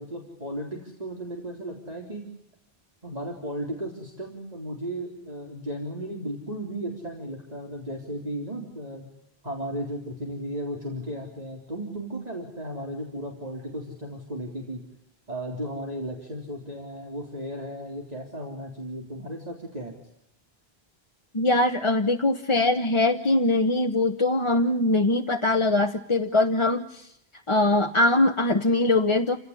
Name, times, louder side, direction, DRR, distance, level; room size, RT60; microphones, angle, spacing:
voice 1, 0.0-2.2 3.0-9.1 9.4-14.8 15.3-19.9, equal, 40° right, 0 dB, 4.2 m, -35 dB
voice 2, 21.3-27.1 27.5-29.4, left 2 dB, 30° left, 5 dB, 1.1 m, -22 dB
29.0 x 18.0 x 9.9 m, 0.77 s
omnidirectional pair, 1.0 m